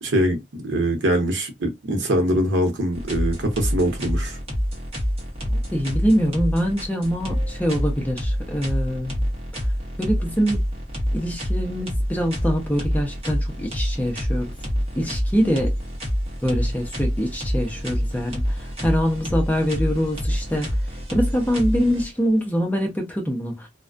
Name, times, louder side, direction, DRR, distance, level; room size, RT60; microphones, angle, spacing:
voice 1, 0.0-4.4, right 1 dB, 80° right, 0.7 m, -23 dB
sound 1, 2.9-22.4, equal, 30° right, 0.8 m, -27 dB
voice 2, 5.4-9.3 10.0-10.6 11.1-14.5 15.0-15.8 16.4-23.7, equal, 10° left, 0.5 m, -24 dB
2.3 x 2.1 x 2.4 m
head